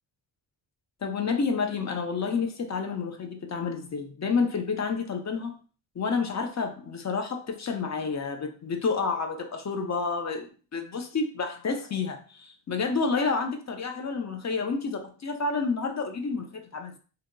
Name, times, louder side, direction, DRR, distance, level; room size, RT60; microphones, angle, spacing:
voice 1, 1.0-5.6 6.0-17.0, left 4 dB, 40° left, 0.5 m, -29 dB
2.8 x 2.2 x 3.8 m
wide cardioid pair, 155°, 44 cm